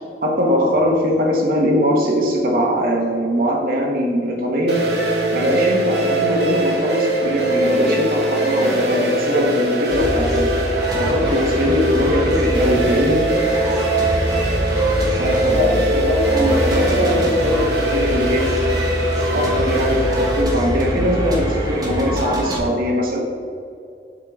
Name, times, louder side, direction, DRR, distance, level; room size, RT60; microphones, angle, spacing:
voice 1, 0.2-4.8 5.3-10.6 11.0-13.2 15.2-18.5 19.3-23.2, equal, 55° right, -1 dB, 1.1 m, -21 dB
sound 1, 4.7-20.4, right 1 dB, 70° right, 1.4 m, -21 dB
sound 2, 9.9-22.6, equal, 20° right, 1.2 m, -25 dB
7.4 x 4.8 x 3.6 m, 2.5 s
head